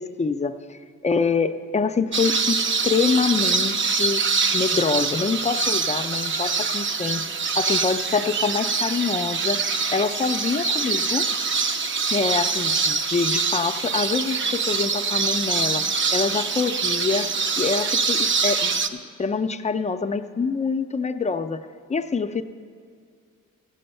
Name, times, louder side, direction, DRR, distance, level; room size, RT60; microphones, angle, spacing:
voice 1, 0.0-4.3 4.5-7.2 7.6-9.6 9.9-11.3 12.1-15.8 16.1-18.8 19.2-22.4, left 4 dB, 25° left, 9 dB, 0.5 m, -25 dB
sound 1, 2.1-18.9, right 5 dB, 40° right, 0.7 m, -24 dB
16.0 x 7.8 x 5.4 m, 2.2 s
cardioid pair, 90°, 30 cm